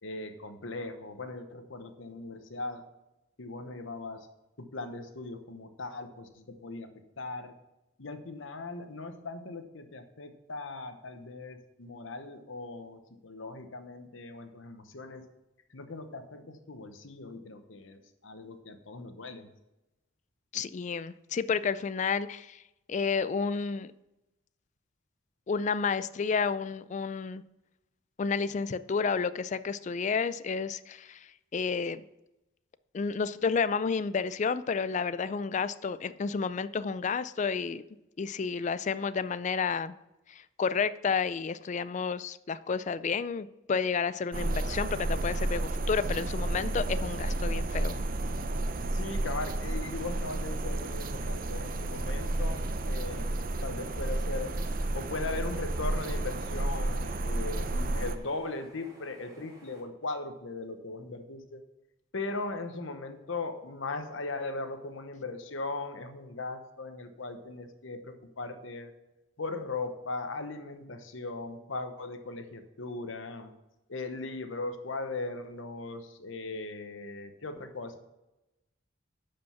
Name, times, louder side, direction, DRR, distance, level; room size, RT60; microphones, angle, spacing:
voice 1, 0.0-2.8 3.4-4.3 4.6-6.9 7.2-7.5 8.0-15.2 15.7-19.5 48.9-53.3 53.6-54.6 54.9-61.6 62.1-68.9 69.4-73.5 73.9-78.0, left 3 dB, 75° left, 8 dB, 1.0 m, -39 dB
voice 2, 20.5-22.6 22.9-23.9 25.5-27.4 28.2-32.0 32.9-37.8 38.2-39.9 40.3-47.9, left 5 dB, 35° left, 15 dB, 0.3 m, -31 dB
sound 1, 44.3-58.2, right 2 dB, 45° right, 0.6 m, -31 dB
sound 2, 49.9-59.8, right 1 dB, 20° right, 2.5 m, -56 dB
11.5 x 5.2 x 5.8 m, 0.96 s
head